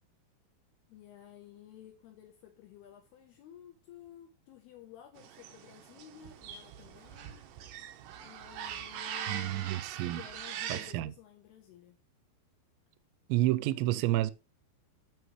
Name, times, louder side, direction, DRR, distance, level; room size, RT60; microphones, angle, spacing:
voice 1, 0.9-7.5 8.2-12.0 13.5-14.1, left 11 dB, 75° left, 2.6 m, -53 dB
sound 1, 5.2-10.9, right 9 dB, 75° right, 2.0 m, -42 dB
voice 2, 9.3-10.2 10.7-11.1 13.3-14.3, right 15 dB, 90° right, 2.9 m, -30 dB
12.5 x 6.3 x 3.1 m
omnidirectional pair, 5.1 m